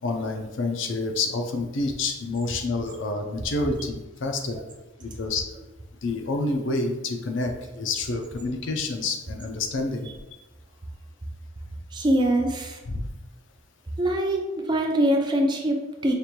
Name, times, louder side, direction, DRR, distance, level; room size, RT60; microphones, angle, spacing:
voice 1, 0.0-4.6 5.0-5.4 6.0-10.1 12.9-13.1, left 3 dB, 65° left, 4 dB, 0.5 m, -28 dB
voice 2, 11.9-12.8 14.0-16.1, right 1 dB, 20° right, 2 dB, 0.4 m, -23 dB
5.1 x 2.5 x 2.9 m, 1.1 s
head